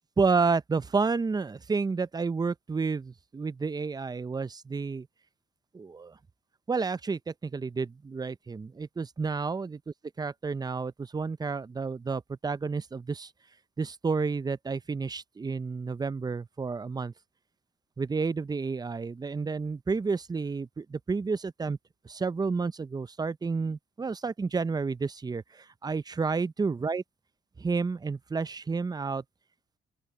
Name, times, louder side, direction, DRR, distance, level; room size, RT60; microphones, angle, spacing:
voice 1, 0.2-5.1 5.7-6.1 6.7-9.8 10.2-13.3 13.8-17.1 18.0-21.8 22.1-27.0 27.6-29.2, right 4 dB, 20° right, 0.5 m, -30 dB
open air
cardioid pair, 90°, 20 cm